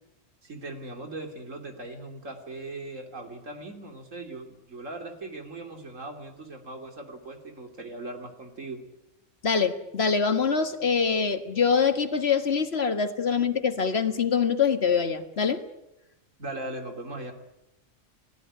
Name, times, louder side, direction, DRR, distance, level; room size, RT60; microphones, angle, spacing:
voice 1, 0.4-8.8 16.4-17.3, right 2 dB, 90° right, 5 dB, 3.4 m, -39 dB
voice 2, 9.4-15.6, left 6 dB, 55° left, 8 dB, 1.8 m, -24 dB
28.0 x 17.5 x 9.9 m, 0.92 s
omnidirectional pair, 1.3 m